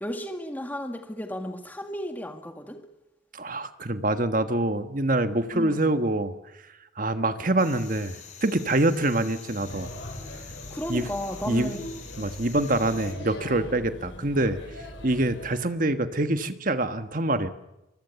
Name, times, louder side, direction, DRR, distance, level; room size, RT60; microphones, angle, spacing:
voice 1, 0.0-2.8 5.5-5.9 10.7-11.8, equal, 10° left, 5 dB, 2.0 m, -33 dB
voice 2, 3.3-6.3 7.0-9.9 10.9-11.1 11.5-11.7 12.2-14.6 15.0-17.5, right 2 dB, 45° right, 9 dB, 1.4 m, -25 dB
sound 1, 7.6-13.1, left 7 dB, 40° left, 5.3 m, -46 dB
Male speech man speaking / Child speech kid speaking / Chatter, 9.6-15.6, left 1 dB, 75° left, 6.9 m, -40 dB
24.5 x 23.0 x 7.0 m, 0.95 s
head